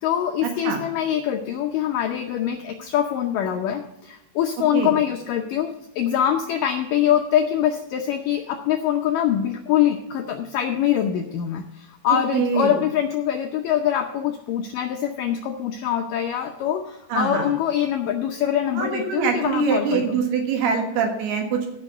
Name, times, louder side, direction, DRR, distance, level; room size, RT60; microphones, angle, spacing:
voice 1, 0.0-20.2, left 10 dB, 90° left, 4 dB, 1.9 m, -24 dB
voice 2, 12.3-12.8 17.1-17.5 18.7-21.7, right 5 dB, 70° right, 3 dB, 3.4 m, -23 dB
14.0 x 6.2 x 6.6 m, 0.88 s
omnidirectional pair, 4.9 m